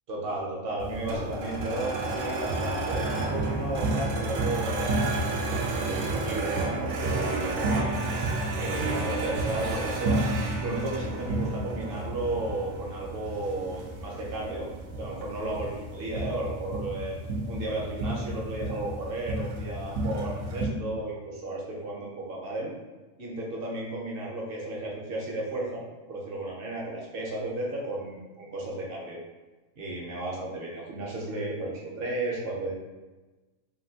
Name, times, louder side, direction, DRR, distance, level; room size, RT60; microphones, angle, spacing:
voice 1, 0.1-4.9 5.2-8.3 8.6-10.3 10.6-14.7 15.0-17.2 17.5-22.7 23.2-29.2 29.8-32.7, right 2 dB, 55° right, -3 dB, 0.7 m, -34 dB
sound 1, 0.8-20.7, right 2 dB, 80° right, 1.0 m, -31 dB
3.1 x 2.5 x 2.7 m, 1.2 s
omnidirectional pair, 1.4 m